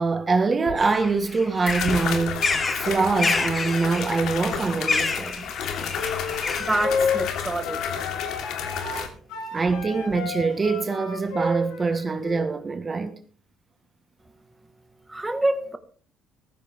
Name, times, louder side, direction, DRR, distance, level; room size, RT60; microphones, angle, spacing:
voice 1, 0.0-2.4 2.7-5.5 9.5-13.1, right 4 dB, 30° right, 1.6 m, -24 dB
sound 1, 0.7-0.8 1.7-9.1, left 7 dB, 75° left, 2.9 m, -31 dB
sound 2, 0.8-6.8, left 4 dB, 30° left, 2.2 m, -29 dB
sound 3, 6.0-12.5, left 4 dB, 90° left, 4.2 m, -30 dB
voice 2, 6.6-7.8 15.1-15.8, right 2 dB, 10° right, 1.6 m, -26 dB
15.0 x 14.5 x 3.6 m
cardioid pair, 105°, 0 cm